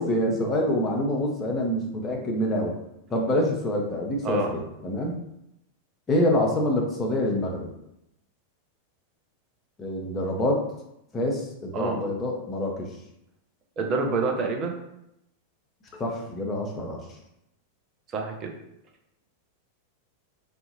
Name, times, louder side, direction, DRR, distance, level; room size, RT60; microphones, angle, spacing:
voice 1, 0.0-2.8 3.1-5.2 6.1-7.7 9.8-10.6 11.1-12.9 16.0-17.0, left 1 dB, 20° left, -1 dB, 0.6 m, -26 dB
voice 2, 13.8-14.7 18.1-18.5, right 3 dB, 30° right, 2 dB, 0.5 m, -27 dB
2.7 x 2.4 x 2.6 m, 0.82 s
figure-of-eight pair, 90°, 0 cm